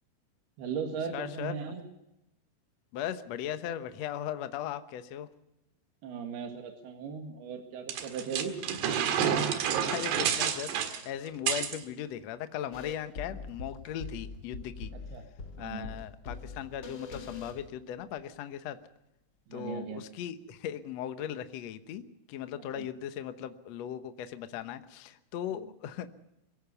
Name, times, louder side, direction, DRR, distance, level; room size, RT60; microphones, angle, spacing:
voice 1, 0.6-1.8 6.0-8.6 14.9-15.3 15.6-15.9 19.5-20.1 22.6-22.9 25.6-25.7, right 6 dB, 75° right, 4 dB, 3.8 m, -38 dB
voice 2, 1.1-1.5 2.9-5.3 9.6-14.9 15.6-18.8 19.5-22.0 22.3-26.1, left 10 dB, 80° left, 10 dB, 1.5 m, -38 dB
sound 1, 7.9-11.8, right 8 dB, 90° right, 3.8 m, -29 dB
sound 2, 12.7-18.2, left 4 dB, 40° left, 1.7 m, -43 dB
23.0 x 16.5 x 7.0 m, 0.87 s
omnidirectional pair, 4.7 m